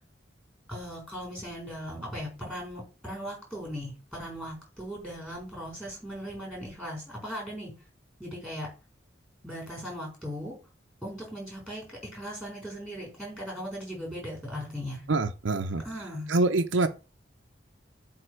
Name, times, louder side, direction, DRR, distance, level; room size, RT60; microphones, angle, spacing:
voice 1, 0.7-7.7 8.2-8.7 9.4-10.5 11.0-15.0 15.8-16.3, equal, 5° left, 4.2 m, -38 dB
voice 2, 15.1-15.8 16.3-16.9, right 3 dB, 85° right, 0.7 m, -25 dB
7.8 x 3.5 x 6.2 m
head